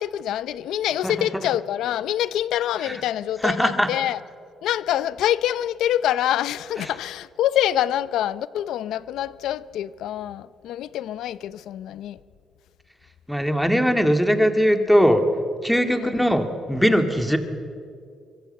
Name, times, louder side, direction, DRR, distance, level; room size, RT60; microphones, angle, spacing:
voice 1, 0.0-4.2 4.6-12.2 15.9-16.2, left 12 dB, 85° left, 0.7 m, -26 dB
voice 2, 3.4-3.9 13.3-15.2 15.6-17.4, equal, ahead, 2.2 m, -20 dB
24.0 x 23.5 x 8.0 m
cardioid pair, 90°, 0 cm